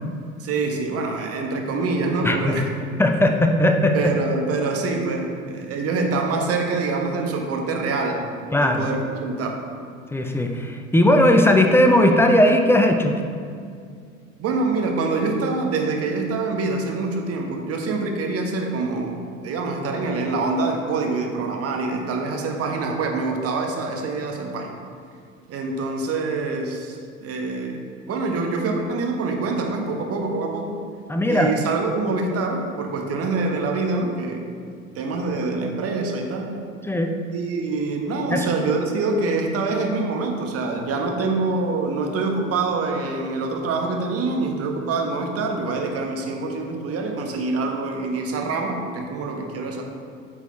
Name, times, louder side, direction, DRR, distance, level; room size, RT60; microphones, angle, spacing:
voice 1, 0.4-2.6 3.9-8.3 8.6-9.6 14.4-19.2 19.4-24.8 25.5-27.8 28.1-30.8 31.3-34.5 34.9-36.5 37.3-49.8, right 3 dB, 35° right, 2 dB, 1.3 m, -25 dB
voice 2, 2.2-2.6 3.0-4.0 8.5-8.8 10.1-13.1 31.1-31.5 36.8-37.1 38.3-38.5, left 1 dB, 5° left, 4 dB, 0.6 m, -18 dB
9.2 x 6.3 x 3.3 m, 2.2 s
figure-of-eight pair, 70°, 40 cm